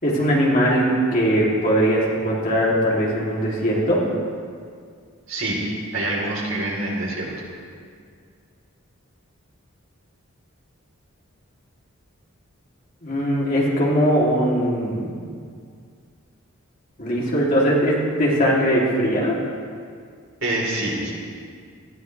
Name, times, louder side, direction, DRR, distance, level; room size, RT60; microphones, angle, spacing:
voice 1, 0.0-4.0 13.0-15.2 17.0-19.4, equal, 40° left, -5 dB, 3.1 m, -20 dB
voice 2, 5.3-5.6 5.9-7.3 20.4-21.1, right 1 dB, 65° right, -4 dB, 4.0 m, -25 dB
18.5 x 14.0 x 3.4 m, 2.2 s
head